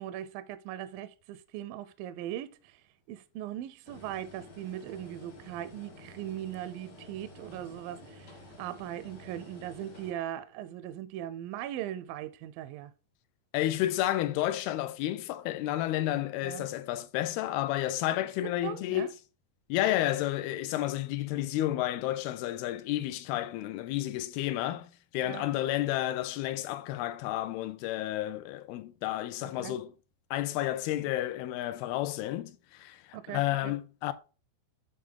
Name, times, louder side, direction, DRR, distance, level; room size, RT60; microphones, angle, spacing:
voice 1, 0.0-12.9 16.4-16.7 18.6-19.1 25.2-25.5 29.6-29.8 33.1-33.8, right 12 dB, 80° right, 2.1 m, -39 dB
sound 1, 3.8-10.1, left 1 dB, 55° left, 1.2 m, -51 dB
voice 2, 13.5-19.1 19.7-29.9 30.3-34.1, left 14 dB, 85° left, 2.5 m, -31 dB
8.5 x 3.7 x 3.7 m
omnidirectional pair, 4.3 m